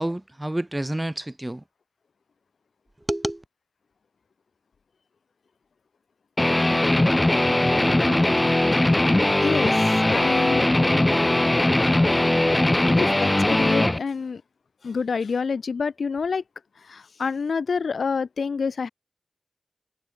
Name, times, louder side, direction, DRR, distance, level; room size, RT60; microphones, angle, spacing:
voice 1, 0.0-1.6 3.1-3.4, right 1 dB, 20° right, 0.7 m, -28 dB
Guitar, 6.4-14.0, left 1 dB, 25° left, 0.6 m, -20 dB
voice 2, 9.4-10.7 12.1-12.3 12.9-14.4 14.8-16.4 16.8-18.9, left 5 dB, 90° left, 0.9 m, -28 dB
cardioid pair, 50°, 0 cm